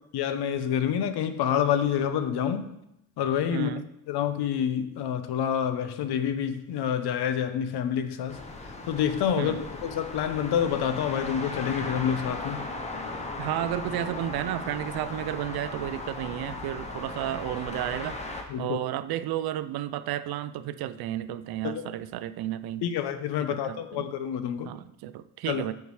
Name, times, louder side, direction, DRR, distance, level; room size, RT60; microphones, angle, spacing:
voice 1, 0.0-2.7 3.2-3.7 4.1-12.6 18.5-18.8 21.6-21.9 22.8-24.7 25.5-25.7, left 9 dB, 80° left, 10 dB, 0.8 m, -28 dB
voice 2, 3.5-3.8 9.4-9.6 13.4-18.2 18.6-22.8 23.7-24.0 24.7-25.7, right 12 dB, 70° right, 13 dB, 0.5 m, -32 dB
sound 1, 8.3-18.4, left 2 dB, 15° left, 0.7 m, -37 dB
8.2 x 4.7 x 4.8 m, 0.82 s
cardioid pair, 180°, 39 cm